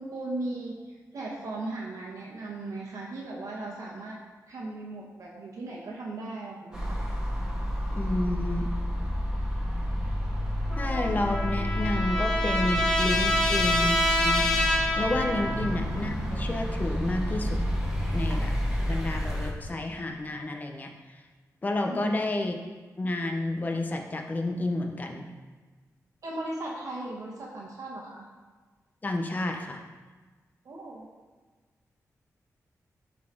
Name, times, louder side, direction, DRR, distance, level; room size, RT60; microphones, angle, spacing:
voice 1, 0.0-4.2 4.5-7.0 21.9-22.2 26.2-28.3 30.6-31.1, right 2 dB, 70° right, -3 dB, 1.1 m, -37 dB
sound 1, 6.7-19.5, equal, 10° right, 1.6 m, -30 dB
voice 2, 7.9-8.7 10.8-14.0 14.2-14.4 15.0-17.6 18.1-18.5 18.9-21.2 21.6-22.6 23.0-25.2 29.0-29.8, left 2 dB, 30° left, 3 dB, 0.7 m, -30 dB
Trumpet, 10.7-15.9, left 1 dB, 10° left, 1.5 m, -27 dB
12.0 x 4.1 x 3.7 m, 1.4 s
wide cardioid pair, 120°, 6 cm